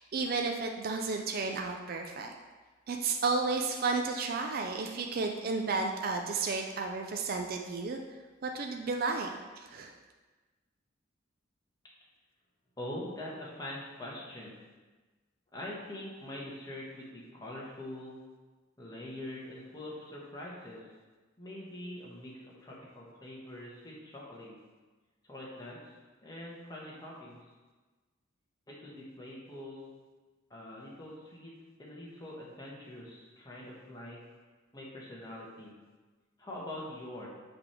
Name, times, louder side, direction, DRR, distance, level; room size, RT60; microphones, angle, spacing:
voice 1, 0.0-2.3 2.9-8.0 8.4-9.3 9.6-9.9, right 4 dB, 50° right, 3 dB, 0.4 m, -32 dB
voice 2, 12.8-14.6 15.5-18.2 18.8-20.9 21.4-24.5 25.2-25.9 26.2-27.5 28.7-29.9 30.5-31.5 31.8-34.2 34.7-35.8 36.4-37.3, left 1 dB, 20° left, -5 dB, 1.3 m, -44 dB
6.0 x 3.4 x 5.8 m, 1.3 s
head